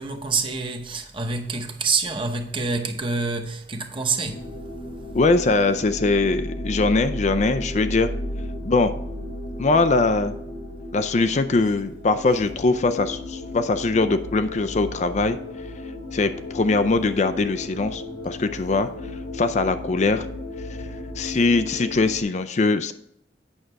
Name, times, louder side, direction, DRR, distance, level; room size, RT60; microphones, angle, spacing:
voice 1, 0.0-4.5, right 4 dB, 30° right, 1.0 m, -27 dB
sound 1, 4.2-22.2, left 1 dB, 75° left, 2.0 m, -34 dB
voice 2, 5.1-8.1 8.6-8.9 9.6-10.3 10.9-15.4 16.1-18.9 19.3-20.3 21.2-22.9, left 3 dB, 40° left, 0.4 m, -21 dB
8.8 x 6.4 x 4.6 m
head